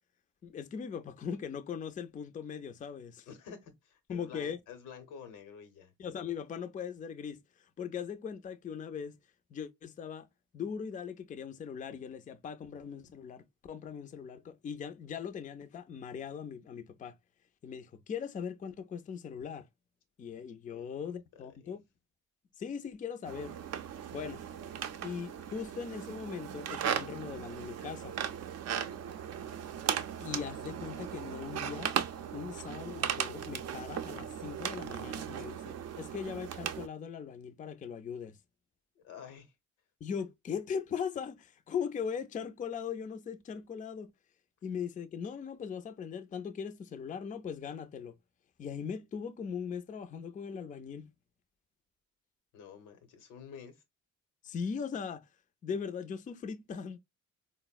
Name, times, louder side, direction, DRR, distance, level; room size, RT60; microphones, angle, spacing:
voice 1, 0.4-3.3 4.1-4.6 6.0-9.2 9.5-10.3 10.5-17.2 17.6-19.7 20.2-21.8 22.6-23.5 24.1-24.4 25.0-28.2 30.2-31.9 32.3-38.4 40.0-44.1 44.6-48.2 48.6-51.1 54.4-55.3 55.6-57.0, left 7 dB, 25° left, 0.4 m, -39 dB
voice 2, 3.3-5.9 20.7-21.1 21.4-21.8 39.0-39.5 52.5-53.8, left 7 dB, 90° left, 0.8 m, -50 dB
sound 1, 23.2-36.9, right 9 dB, 55° right, 0.5 m, -37 dB
3.9 x 2.0 x 2.2 m
cardioid pair, 90°, 30 cm